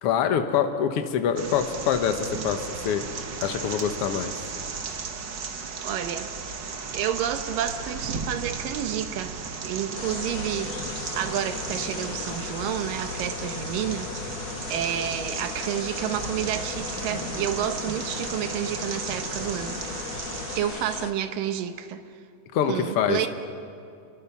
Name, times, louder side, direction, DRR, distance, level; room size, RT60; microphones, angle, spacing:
voice 1, 0.0-3.1 3.4-4.3 22.5-23.2, left 8 dB, 55° left, 7 dB, 1.8 m, -25 dB
sound 1, 1.4-20.6, right 5 dB, 50° right, 1.4 m, -35 dB
voice 2, 5.8-6.3 6.9-9.4 9.6-10.8 11.2-14.3 14.7-19.8 20.6-22.0 22.7-23.3, right 10 dB, 85° right, 9 dB, 2.7 m, -30 dB
sound 2, 10.0-21.1, left 8 dB, 75° left, 2.4 m, -37 dB
28.5 x 22.5 x 6.1 m, 2.5 s
omnidirectional pair, 3.8 m